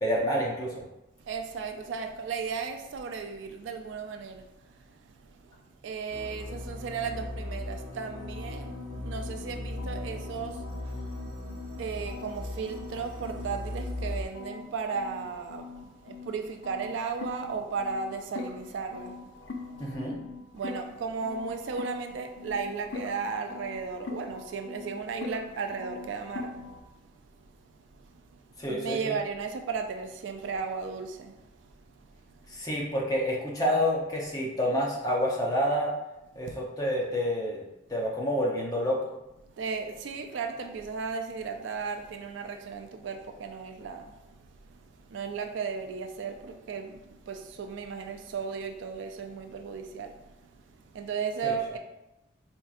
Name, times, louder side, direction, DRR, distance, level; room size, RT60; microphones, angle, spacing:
voice 1, 0.0-0.8 19.8-20.2 28.6-29.2 32.5-35.9 36.3-37.6 37.9-39.1 51.4-51.6, equal, 20° left, 0.6 m, -28 dB
voice 2, 1.2-19.8 20.5-27.1 27.9-28.4 28.7-32.4 39.5-51.8, right 5 dB, 70° right, 0.3 m, -36 dB
sound 1, 6.1-14.2, left 1 dB, 50° right, 1.2 m, -38 dB
sound 2, 8.1-11.8 12.1-16.4 16.6-26.8, left 4 dB, 65° left, 0.5 m, -43 dB
4.4 x 2.6 x 2.4 m
head